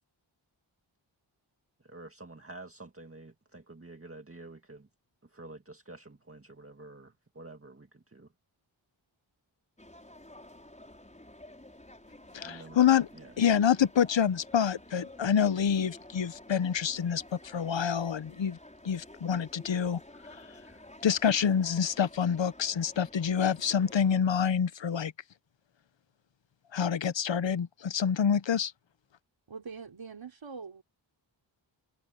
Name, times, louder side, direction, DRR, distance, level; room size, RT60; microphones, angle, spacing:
voice 1, 1.8-4.9 5.2-8.3 12.4-12.8 13.1-13.3, right 2 dB, 30° right, 2.1 m, -49 dB
sound 1, 9.8-24.2, left 1 dB, 15° left, 6.0 m, -52 dB
voice 2, 12.3-13.1 13.4-18.6 18.8-20.0 21.0-25.1 26.7-28.7, left 8 dB, 65° left, 0.9 m, -27 dB
voice 3, 29.5-30.8, right 5 dB, 70° right, 3.3 m, -43 dB
wide cardioid pair, 70°, 47 cm